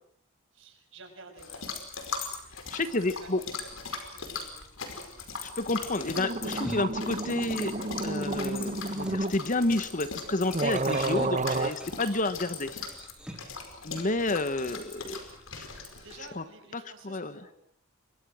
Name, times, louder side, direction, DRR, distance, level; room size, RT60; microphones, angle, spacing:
voice 1, 0.5-1.6 2.8-3.4 3.9-4.7 13.5-13.7 14.4-14.7 15.7-17.5, right 3 dB, 65° right, 4 dB, 6.5 m, -52 dB
sound 1, 1.4-16.3, left 5 dB, 80° left, 4.9 m, -40 dB
voice 2, 2.7-3.4 5.4-7.7 8.0-12.8 13.8-15.2 15.6-15.7 16.4-16.5 16.7-17.4, left 2 dB, 40° left, 12 dB, 1.3 m, -30 dB
sound 2, 5.9-6.0 6.2-9.4 10.1-10.2 10.5-11.7, right 2 dB, 35° right, 1.6 m, -30 dB
sound 3, 6.6-13.6, right 1 dB, 5° right, 3.4 m, -48 dB
29.5 x 24.0 x 6.4 m, 0.67 s
head